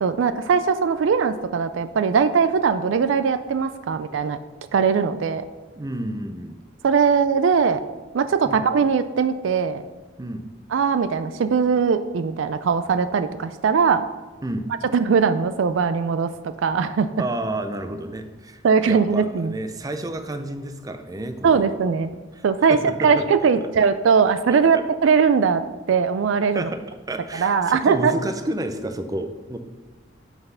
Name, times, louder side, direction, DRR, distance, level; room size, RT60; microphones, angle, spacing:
voice 1, 0.0-4.4 4.7-5.4 6.8-7.8 8.1-9.8 10.7-14.1 14.9-16.3 16.6-17.1 18.6-19.5 21.4-22.1 22.4-26.7 27.4-28.1, right 5 dB, 70° right, 11 dB, 0.4 m, -20 dB
voice 2, 5.8-6.6 8.4-8.6 10.2-10.4 14.4-14.7 17.2-21.7 22.3-22.4 22.7-23.2 24.5-24.8 26.5-26.8 27.1-29.6, right 1 dB, 20° right, 8 dB, 0.5 m, -30 dB
5.9 x 5.5 x 5.6 m, 1.2 s
head